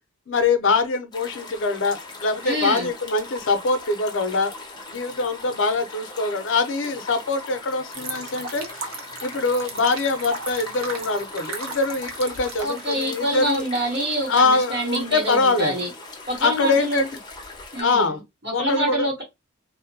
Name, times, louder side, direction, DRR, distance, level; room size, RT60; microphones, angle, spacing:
voice 1, 0.3-4.5 4.9-8.9 9.2-13.6 14.3-15.7 16.4-17.1 17.8-18.2 18.5-19.0, left 3 dB, 60° left, 0.5 m, -23 dB
sound 1, 1.1-17.8, left 3 dB, 20° left, 0.6 m, -40 dB
voice 2, 2.4-2.9 12.6-15.9 16.3-17.0 17.7-19.2, right 1 dB, 45° right, 1.0 m, -26 dB
sound 2, 7.9-13.3, right 4 dB, 75° right, 0.6 m, -36 dB
2.6 x 2.1 x 2.6 m
head